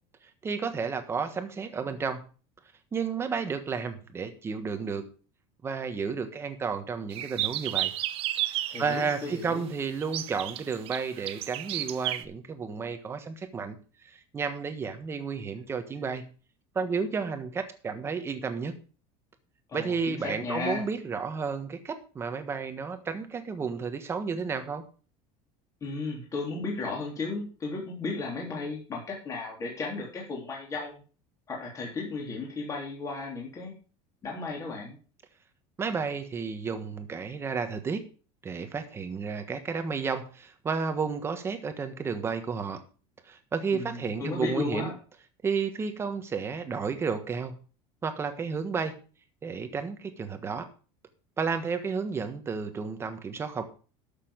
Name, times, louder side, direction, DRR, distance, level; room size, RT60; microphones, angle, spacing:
voice 1, 0.2-2.2 2.9-5.1 5.6-7.9 8.5-13.7 14.0-16.3 16.7-18.8 19.7-24.8 35.8-38.0 38.4-42.8 43.2-44.9 45.4-47.5 48.0-48.9 49.4-50.7 51.4-53.6, right 5 dB, 20° right, 8 dB, 1.4 m, -32 dB
sound 1, 7.1-9.2 10.0-12.2, right 14 dB, 45° right, 0.8 m, -32 dB
voice 2, 8.7-9.7 19.7-20.8 25.8-31.0 31.5-33.7 34.2-35.0 43.7-44.9, left 3 dB, 25° left, -2 dB, 3.5 m, -34 dB
12.5 x 6.9 x 5.2 m, 0.37 s
cardioid pair, 165°, 14 cm